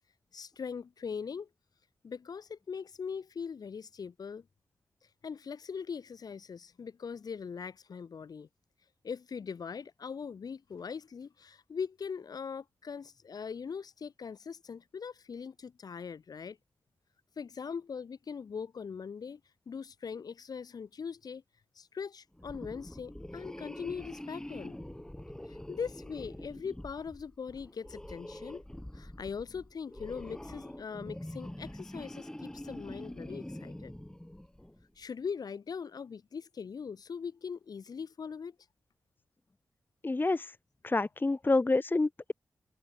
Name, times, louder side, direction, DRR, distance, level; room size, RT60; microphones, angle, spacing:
voice 1, 0.3-1.5 2.0-4.5 5.2-8.5 9.0-16.6 17.4-19.4 19.7-21.4 21.7-24.8 25.5-28.6 28.9-33.9 35.0-38.5, left 6 dB, 75° left, 3.3 m, -41 dB
sound 1, 22.4-34.9, left 1 dB, 10° left, 1.5 m, -45 dB
voice 2, 40.0-40.5 40.8-42.3, left 2 dB, 30° left, 0.8 m, -28 dB
cardioid pair, 45°, 7 cm